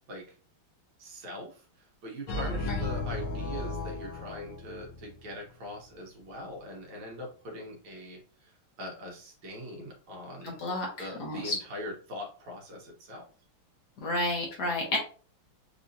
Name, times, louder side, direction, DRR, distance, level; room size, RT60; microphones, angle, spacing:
voice 1, 1.0-10.6 11.0-13.2, left 1 dB, 70° right, -1 dB, 1.9 m, -42 dB
sound 1, 2.3-5.2, left 2 dB, 85° left, 1.6 m, -35 dB
voice 2, 10.4-11.5 14.0-15.0, left 2 dB, 60° left, 0 dB, 1.3 m, -31 dB
4.8 x 2.7 x 2.6 m, 0.40 s
omnidirectional pair, 2.3 m